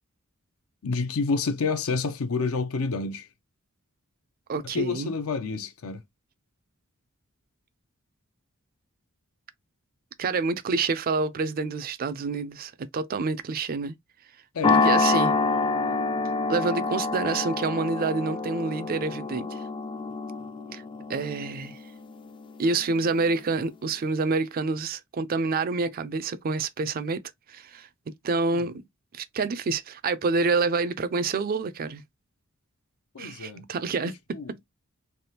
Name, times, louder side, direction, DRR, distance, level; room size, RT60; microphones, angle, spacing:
voice 1, 0.8-3.3 4.6-6.0 14.5-14.8 28.5-28.7 33.1-33.7 34.0-34.6, left 4 dB, 70° left, 0.5 m, -29 dB
voice 2, 4.5-5.1 10.2-14.0 14.7-15.3 16.5-19.6 20.7-20.8 21.1-21.8 22.6-27.2 27.5-27.9 28.2-28.8 29.1-32.0 33.2-34.2, right 4 dB, 45° right, 0.4 m, -27 dB
sound 1, 14.6-23.1, left 3 dB, 25° left, 0.4 m, -27 dB
3.4 x 2.3 x 2.7 m
head